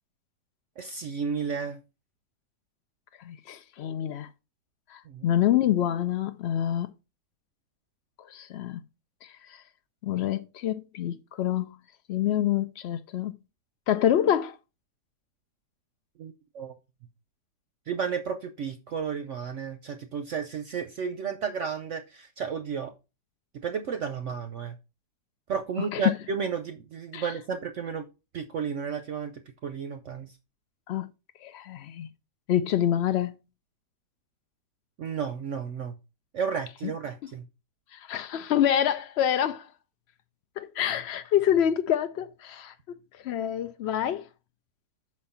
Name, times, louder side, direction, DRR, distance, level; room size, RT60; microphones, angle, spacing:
voice 1, 0.8-1.8 5.1-5.2 16.2-16.7 17.9-22.9 23.5-24.7 25.5-28.1 28.3-29.3 29.6-30.3 35.0-36.0 36.3-37.4, right 6 dB, 60° right, 0.8 m, -32 dB
voice 2, 3.2-4.3 4.9-6.9 8.2-8.8 9.2-9.6 10.0-11.7 12.1-13.4 13.9-14.6 25.8-26.1 27.1-27.3 30.9-31.1 31.4-32.1 32.5-33.4 36.8-36.9 37.9-39.7 40.6-42.7 43.1-44.3, left 10 dB, 90° left, 0.5 m, -27 dB
6.1 x 4.3 x 5.5 m
omnidirectional pair, 1.7 m